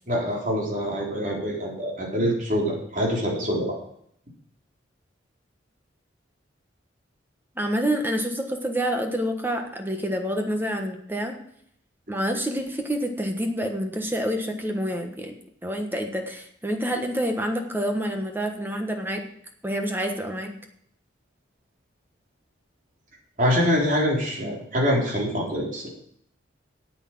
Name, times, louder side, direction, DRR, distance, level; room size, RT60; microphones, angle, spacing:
voice 1, 0.1-3.8 23.4-25.9, equal, 45° right, -2 dB, 3.9 m, -25 dB
voice 2, 7.6-11.4 12.1-15.3 15.6-19.2 19.6-20.5, equal, 10° right, 4 dB, 1.3 m, -27 dB
9.8 x 8.4 x 7.5 m, 0.69 s
head